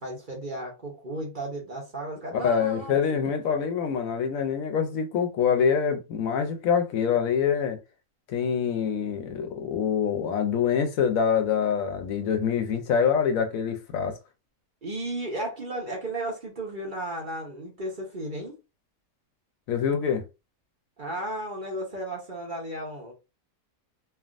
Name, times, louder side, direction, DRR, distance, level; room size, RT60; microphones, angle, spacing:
voice 1, 0.0-3.3 14.8-18.6 21.0-23.1, right 1 dB, 40° right, 0.9 m, -34 dB
voice 2, 2.3-7.8 8.3-14.2 19.7-20.2, left 7 dB, 75° left, 1.0 m, -25 dB
3.4 x 2.3 x 2.4 m
omnidirectional pair, 1.5 m